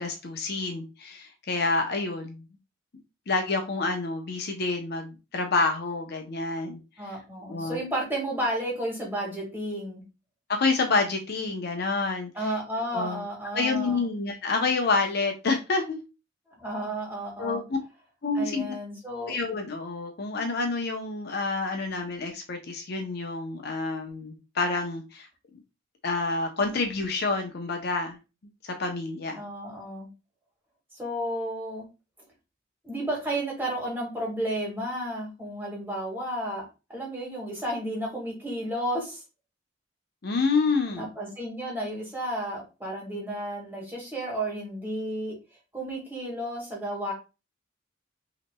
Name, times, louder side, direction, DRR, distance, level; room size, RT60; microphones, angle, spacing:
voice 1, 0.0-2.4 3.3-7.1 7.5-7.8 10.5-12.3 12.9-13.3 13.5-16.0 17.4-17.8 18.2-18.8 19.3-25.3 26.0-28.2 28.6-29.4 40.2-41.1, left 3 dB, 55° left, 4 dB, 0.7 m, -28 dB
voice 2, 7.0-10.0 12.3-14.0 16.6-17.6 18.4-19.4 29.4-30.1 31.0-31.9 32.8-36.6 36.9-39.2 40.9-45.4 45.7-47.1, right 1 dB, 10° right, -3 dB, 1.8 m, -32 dB
5.7 x 3.0 x 2.2 m, 0.29 s
head